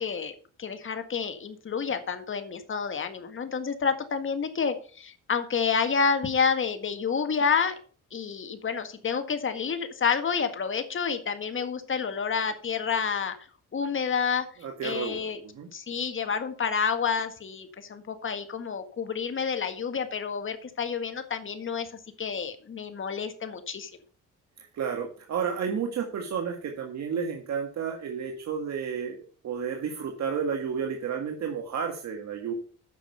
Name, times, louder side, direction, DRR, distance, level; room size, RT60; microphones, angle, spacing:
voice 1, 0.0-7.8 8.1-13.4 13.7-14.5 14.8-15.4 15.7-21.9 22.2-24.0, left 6 dB, 40° left, 8 dB, 1.8 m, -29 dB
voice 2, 14.6-15.7 24.6-29.2 29.4-32.5, right 6 dB, 65° right, 2 dB, 1.8 m, -31 dB
9.2 x 6.2 x 6.8 m, 0.42 s
cardioid pair, 90°, 30 cm